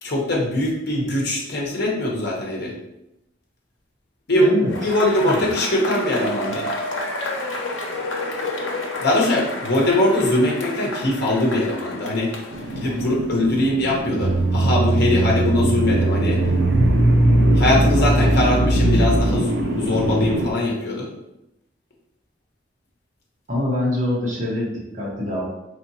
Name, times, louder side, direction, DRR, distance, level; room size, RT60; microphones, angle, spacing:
voice 1, 0.0-2.7 4.3-6.7 9.0-12.3 12.7-16.4 17.5-21.1, left 1 dB, 60° left, -2 dB, 1.0 m, -21 dB
voice 2, 4.3-4.7 5.2-5.4 23.5-25.4, left 1 dB, 40° right, -6 dB, 1.4 m, -25 dB
Cheering / Applause / Crowd, 4.7-13.4, left 2 dB, 90° left, 0.8 m, -31 dB
sound 1, 12.5-20.5, right 1 dB, 70° right, 0.6 m, -26 dB
sound 2, 14.2-19.6, right 1 dB, 25° right, 0.4 m, -19 dB
4.3 x 3.1 x 2.8 m, 0.88 s
head